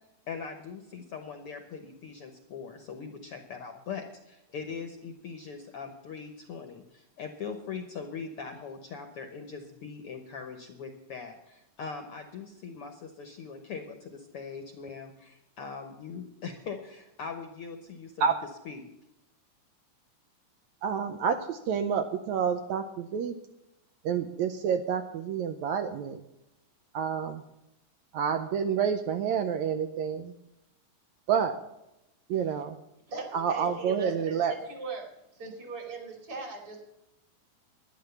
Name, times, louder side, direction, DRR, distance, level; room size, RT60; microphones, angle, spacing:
voice 1, 0.3-18.3 18.6-18.9, left 5 dB, 65° left, 5 dB, 1.5 m, -41 dB
voice 2, 20.8-23.3 24.1-26.2 26.9-27.4 28.1-30.3 31.3-31.6 32.3-32.8 33.3-34.5, right 7 dB, 75° right, 7 dB, 1.9 m, -28 dB
voice 3, 32.3-32.6 33.1-35.1 35.3-36.8, right 3 dB, 45° right, 1 dB, 3.5 m, -40 dB
11.5 x 10.0 x 6.9 m, 0.89 s
omnidirectional pair, 3.6 m